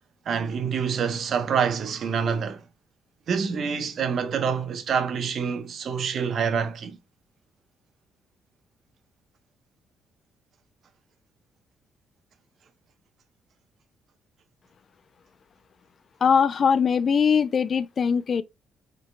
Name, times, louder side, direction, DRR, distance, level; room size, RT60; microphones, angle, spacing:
voice 1, 0.3-2.6 3.3-7.0, right 6 dB, 60° right, 1.0 m, -26 dB
voice 2, 16.2-18.4, left 6 dB, 50° left, 0.4 m, -21 dB
5.4 x 3.8 x 2.2 m
cardioid pair, 90°, 0 cm